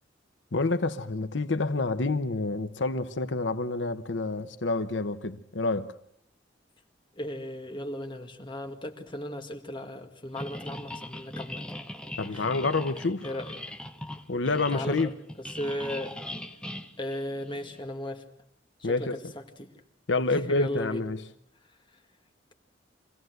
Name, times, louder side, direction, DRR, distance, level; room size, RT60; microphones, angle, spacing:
voice 1, 0.5-5.9 12.2-13.3 14.3-15.1 18.8-19.2 20.1-21.2, left 3 dB, 85° left, 0.9 m, -28 dB
voice 2, 7.2-11.7 12.3-12.4 13.2-13.5 14.7-15.0 15.4-16.2 17.0-18.2 18.8-19.2 19.6-19.7 20.3-21.0, equal, 25° left, 1.9 m, -36 dB
sound 1, 10.4-17.8, left 1 dB, 5° left, 1.0 m, -40 dB
24.5 x 16.5 x 7.9 m
head